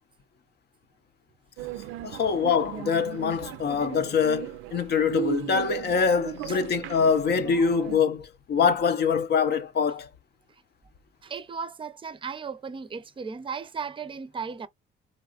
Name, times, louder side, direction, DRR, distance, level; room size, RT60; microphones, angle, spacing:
sound 1, 1.6-8.0, right 14 dB, 90° right, 0.4 m, -37 dB
voice 1, 2.0-10.1, left 6 dB, 55° left, 0.5 m, -24 dB
voice 2, 11.2-14.7, right 5 dB, 25° right, 0.5 m, -36 dB
3.9 x 2.3 x 2.3 m
cardioid pair, 90°, 20 cm